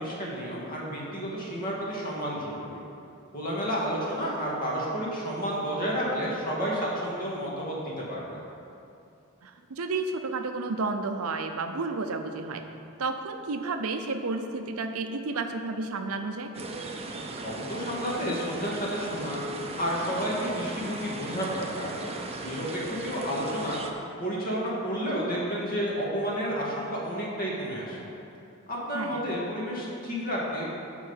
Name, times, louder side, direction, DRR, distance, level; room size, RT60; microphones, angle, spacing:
voice 1, 0.0-2.8 3.3-8.4 17.4-21.9 22.4-23.8 24.2-28.1 28.7-30.7, equal, 40° left, -5 dB, 2.1 m, -31 dB
voice 2, 9.4-12.7 13.0-16.5 28.9-29.2, right 3 dB, 90° right, 6 dB, 0.6 m, -31 dB
sound 1, 16.5-23.9, right 2 dB, 30° right, 0.6 m, -37 dB
10.5 x 3.9 x 7.2 m, 2.6 s
head